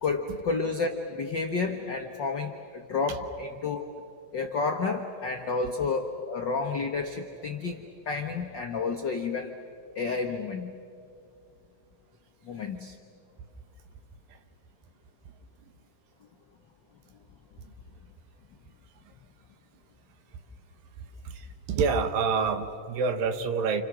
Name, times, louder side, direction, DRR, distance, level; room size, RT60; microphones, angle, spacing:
voice 1, 0.0-3.9 4.3-9.5 9.9-10.7 12.5-12.9, left 4 dB, 75° left, 3 dB, 1.0 m, -30 dB
voice 2, 21.7-23.8, right 5 dB, 80° right, 8 dB, 3.0 m, -26 dB
29.5 x 29.0 x 6.2 m, 2.4 s
omnidirectional pair, 4.0 m